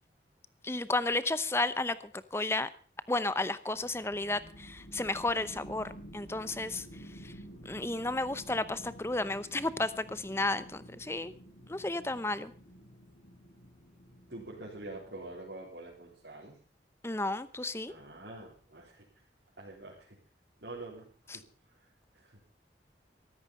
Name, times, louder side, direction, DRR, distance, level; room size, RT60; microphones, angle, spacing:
voice 1, 0.6-2.0 2.3-2.7 3.1-6.8 7.2-7.3 7.6-11.3 11.7-12.5 17.0-17.9 21.3-21.4, left 2 dB, 15° left, 15 dB, 0.7 m, -32 dB
sound 1, 3.7-15.8, equal, 70° left, 4.9 m, -51 dB
voice 2, 14.3-16.6 17.9-19.0 19.6-20.2 20.6-21.1 21.3-21.9 22.1-22.5, right 2 dB, 80° right, -4 dB, 4.0 m, -46 dB
14.0 x 13.5 x 5.4 m, 0.41 s
head